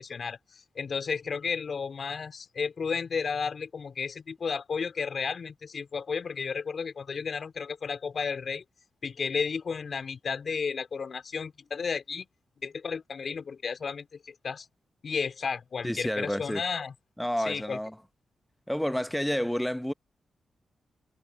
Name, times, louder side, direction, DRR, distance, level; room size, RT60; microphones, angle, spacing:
voice 1, 0.0-8.6 9.0-12.3 12.6-14.7 15.0-16.9 17.5-17.8, left 5 dB, 60° left, 3.6 m, -33 dB
voice 2, 15.8-16.6 17.2-17.9 18.7-19.9, equal, 5° left, 1.3 m, -29 dB
supercardioid pair, 45°, 0 cm